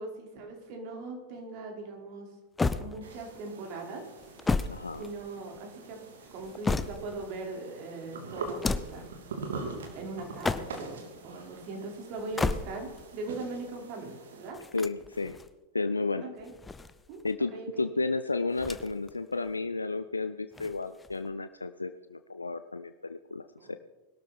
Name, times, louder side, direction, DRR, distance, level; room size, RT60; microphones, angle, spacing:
voice 1, 0.0-2.3 2.8-4.0 5.0-6.0 6.3-9.1 9.9-14.6 16.2-16.5 17.1-17.2 17.5-17.9 23.6-23.7, right 3 dB, 45° right, 1 dB, 4.8 m, -40 dB
sound 1, 2.6-3.4 4.2-5.6 6.2-7.3 8.4-9.1 10.2-11.0 12.2-13.0 14.5-15.5 16.4-17.3 18.5-19.1 19.4-19.5 20.5-21.3, left 3 dB, 10° left, 0.8 m, -33 dB
sound 2, 3.0-14.5, right 3 dB, 65° right, 2.8 m, -44 dB
voice 2, 4.6-5.1 14.7-15.4 15.7-16.2 17.2-23.8, left 3 dB, 80° left, 10 dB, 0.6 m, -32 dB
21.0 x 12.5 x 4.4 m, 1.1 s
figure-of-eight pair, 90°, 0 cm